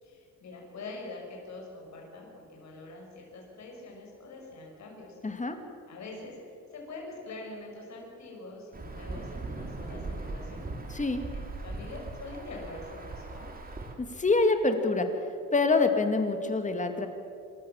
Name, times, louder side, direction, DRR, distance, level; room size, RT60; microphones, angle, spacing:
voice 1, 0.0-5.2 5.9-6.4 6.7-10.6 11.3-13.5, left 2 dB, 65° left, -1 dB, 6.1 m, -44 dB
voice 2, 5.2-5.6 10.9-11.2 14.0-15.1 15.5-17.1, left 3 dB, 25° left, 6 dB, 2.4 m, -25 dB
Insect / Thunder / Rain, 8.7-13.9, right 2 dB, 30° right, 3.1 m, -39 dB
27.5 x 13.5 x 7.4 m, 2.6 s
cardioid pair, 90°, 30 cm